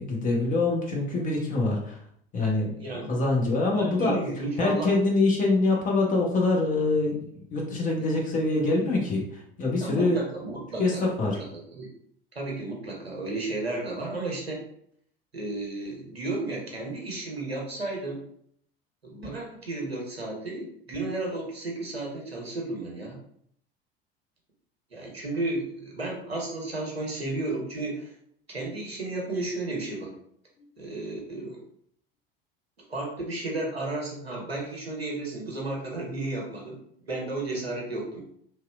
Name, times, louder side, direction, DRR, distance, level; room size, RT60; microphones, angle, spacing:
voice 1, 0.0-2.0 2.3-2.7 3.1-4.1 4.6-10.2 10.8-11.4, left 2 dB, 25° left, -1 dB, 0.6 m, -25 dB
voice 2, 2.7-3.1 3.7-4.9 9.8-11.0 11.3-11.5 11.7-11.9 12.3-14.6 15.3-18.2 19.0-23.2 24.9-28.1 28.5-30.1 30.8-31.6 32.9-36.8 37.1-38.2, right 2 dB, 90° right, -1 dB, 0.7 m, -33 dB
2.8 x 2.0 x 2.3 m, 0.66 s
figure-of-eight pair, 75°, 30 cm